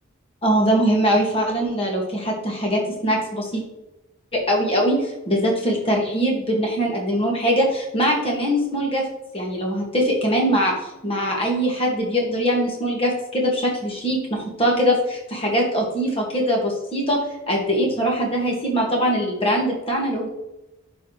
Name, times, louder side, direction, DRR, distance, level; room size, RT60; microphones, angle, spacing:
voice 1, 0.4-3.6 4.3-9.0 9.3-17.2 17.5-20.3, equal, 30° left, -1 dB, 2.0 m, -22 dB
11.0 x 4.8 x 3.2 m, 0.94 s
head